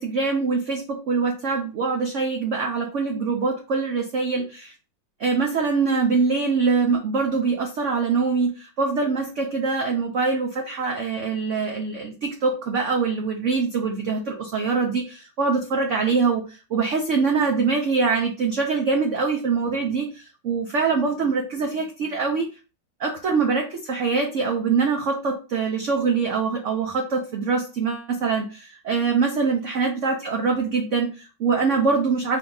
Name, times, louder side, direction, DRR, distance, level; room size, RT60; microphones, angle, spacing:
voice 1, 0.0-4.7 5.2-22.5 23.0-32.4, right 4 dB, 70° right, 1 dB, 0.7 m, -24 dB
4.1 x 2.8 x 3.9 m, 0.34 s
omnidirectional pair, 2.2 m